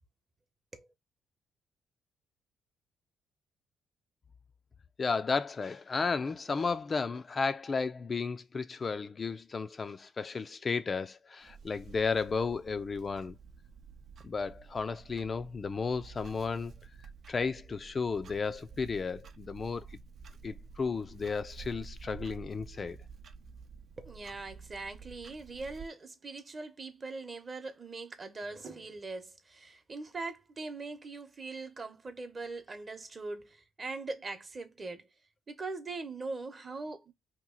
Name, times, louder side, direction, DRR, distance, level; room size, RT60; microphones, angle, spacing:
voice 1, 5.0-13.4 14.2-16.7 17.3-19.9 20.4-23.0, left 4 dB, 35° left, 0.3 m, -33 dB
Clock, 11.4-25.9, right 5 dB, 60° right, 0.5 m, -50 dB
voice 2, 24.0-35.1 35.5-37.1, right 3 dB, 35° right, 0.8 m, -41 dB
2.9 x 2.3 x 3.6 m
cardioid pair, 90°, 0 cm